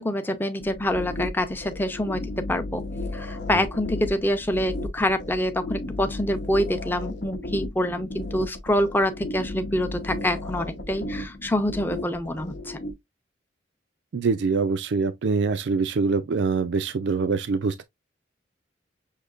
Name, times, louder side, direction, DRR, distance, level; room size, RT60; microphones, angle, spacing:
voice 1, 0.0-2.8 3.1-12.8, left 1 dB, 10° left, 0.6 m, -26 dB
sound 1, 0.6-12.9, left 2 dB, 65° left, 0.8 m, -34 dB
voice 2, 14.1-17.8, right 4 dB, 70° right, 0.4 m, -24 dB
6.5 x 2.8 x 2.4 m
head